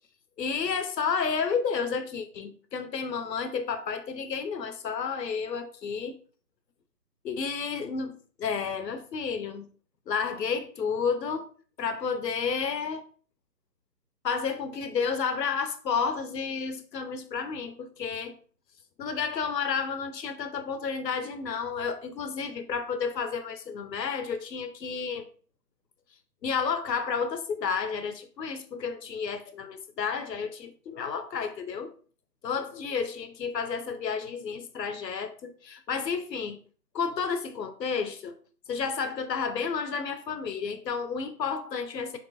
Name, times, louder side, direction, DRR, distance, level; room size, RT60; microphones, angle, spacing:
voice 1, 0.4-6.2 7.2-9.7 10.1-11.5 11.8-13.0 14.2-18.3 19.0-25.3 26.4-31.9 32.4-36.6 36.9-38.3 38.7-42.2, left 6 dB, 85° left, 0.8 m, -31 dB
4.4 x 4.0 x 2.6 m
hypercardioid pair, 170°, 49 cm